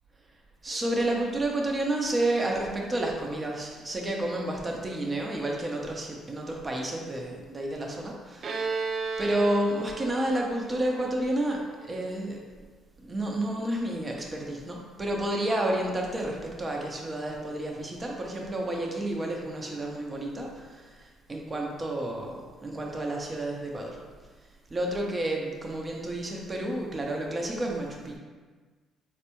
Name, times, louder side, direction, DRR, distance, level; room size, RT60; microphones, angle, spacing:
voice 1, 0.6-8.9 9.2-12.4 13.0-24.0 24.7-28.2, right 1 dB, 30° right, 0 dB, 0.7 m, -30 dB
Bowed string instrument, 8.4-12.0, right 4 dB, 55° right, 0.4 m, -34 dB
4.0 x 2.2 x 2.9 m, 1.4 s
supercardioid pair, 65°, 0 cm